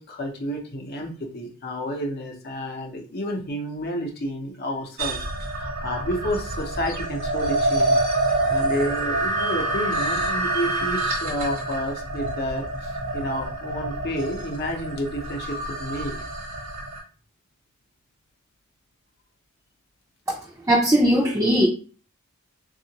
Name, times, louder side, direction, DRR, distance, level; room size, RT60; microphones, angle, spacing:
voice 1, 0.0-5.2 5.5-8.0 8.5-16.1, equal, 50° left, 2 dB, 0.7 m, -30 dB
sound 1, 5.0-17.0, right 2 dB, 65° right, 1.0 m, -27 dB
voice 2, 20.7-21.7, equal, 15° right, -3 dB, 0.5 m, -18 dB
3.6 x 2.4 x 2.8 m, 0.38 s
head